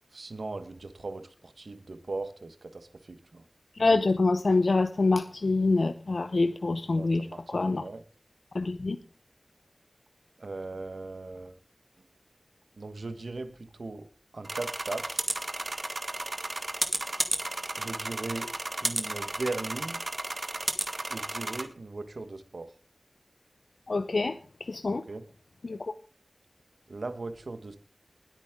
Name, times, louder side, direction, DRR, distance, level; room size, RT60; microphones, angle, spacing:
voice 1, 0.1-3.4 7.0-8.0 10.4-11.6 12.8-14.1 14.3-15.2 17.8-18.5 18.8-20.0 21.1-22.7 25.1-25.2 26.9-27.8, right 3 dB, 75° right, 10 dB, 1.4 m, -38 dB
voice 2, 3.8-7.8 8.5-9.0 23.9-24.4 24.7-25.0 25.6-25.9, left 3 dB, 75° left, 10 dB, 0.7 m, -26 dB
sound 1, 14.4-21.6, right 2 dB, 45° right, 2.0 m, -33 dB
20.0 x 9.3 x 3.7 m, 0.37 s
wide cardioid pair, 45°, 0 cm